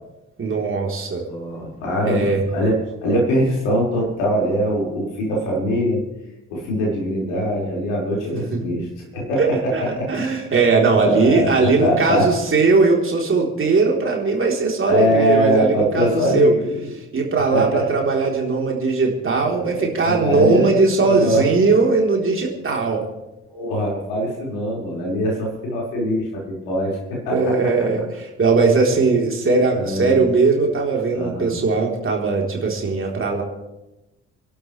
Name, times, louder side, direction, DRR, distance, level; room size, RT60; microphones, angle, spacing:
voice 1, 0.4-1.2 2.0-2.4 8.3-8.6 9.4-9.5 9.7-16.5 17.1-23.0 27.3-33.4, right 4 dB, 30° right, 0 dB, 3.9 m, -19 dB
voice 2, 1.3-6.0 6.5-8.9 9.1-10.1 11.0-11.5 11.8-12.3 14.9-16.7 17.5-17.8 19.5-21.4 23.5-27.5 29.7-30.2 31.1-31.5, equal, 65° left, -4 dB, 5.5 m, -22 dB
28.5 x 12.0 x 3.4 m, 0.97 s
figure-of-eight pair, 45°, 39 cm